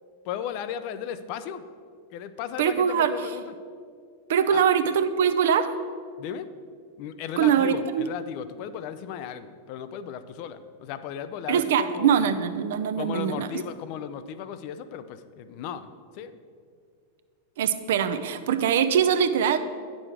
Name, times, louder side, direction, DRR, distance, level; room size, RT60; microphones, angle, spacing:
voice 1, 0.3-1.6 2.1-3.5 4.5-4.7 6.2-6.5 7.0-12.3 13.0-15.9 16.1-16.3, left 9 dB, 45° left, 12 dB, 0.4 m, -36 dB
voice 2, 2.6-3.1 4.3-5.7 7.4-8.1 11.5-13.5 17.6-19.6, right 8 dB, 55° right, 10 dB, 0.5 m, -22 dB
9.7 x 6.2 x 4.8 m, 2.1 s
figure-of-eight pair, 90°, 0 cm